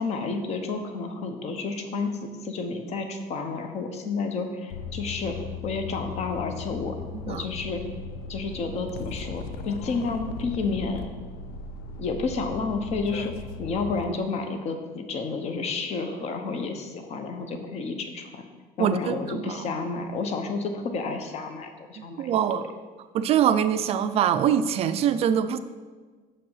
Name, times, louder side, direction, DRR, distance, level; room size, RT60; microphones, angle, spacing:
voice 1, 0.0-5.4 5.6-7.0 7.3-7.8 8.3-11.1 12.0-18.4 18.8-22.6, left 4 dB, 45° left, 6 dB, 0.9 m, -31 dB
sound 1, 4.7-14.0, left 4 dB, 75° left, 0.5 m, -37 dB
voice 2, 7.1-7.4 18.8-19.7 22.0-22.7 23.1-25.6, right 9 dB, 40° right, 11 dB, 0.4 m, -24 dB
6.6 x 5.5 x 5.5 m, 1.4 s
cardioid pair, 165°, 16 cm